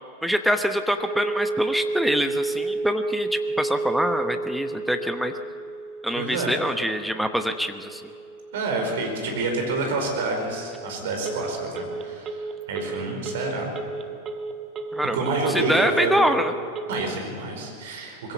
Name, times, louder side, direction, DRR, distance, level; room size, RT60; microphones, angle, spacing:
voice 1, 0.2-5.3 6.0-8.1 14.9-16.5, equal, ahead, 7 dB, 1.0 m, -25 dB
Telephone, 1.0-17.0, right 3 dB, 30° right, 1.5 m, -32 dB
voice 2, 6.1-6.6 8.5-13.7 15.1-16.2 16.9-18.3, right 3 dB, 55° right, 2 dB, 5.0 m, -28 dB
21.0 x 16.5 x 8.2 m, 2.5 s
figure-of-eight pair, 90°, 0 cm